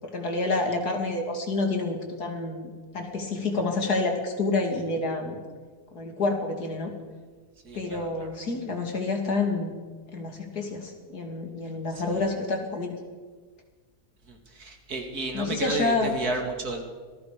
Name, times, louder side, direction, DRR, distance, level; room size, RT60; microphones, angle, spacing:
voice 1, 0.0-5.4 5.9-6.9 7.7-9.7 10.1-12.9 15.3-16.2, left 3 dB, 75° left, 3 dB, 3.4 m, -28 dB
voice 2, 7.6-8.3 12.1-12.3 14.3-16.8, right 3 dB, 70° right, 3 dB, 3.0 m, -32 dB
25.5 x 19.5 x 5.2 m, 1.5 s
omnidirectional pair, 1.7 m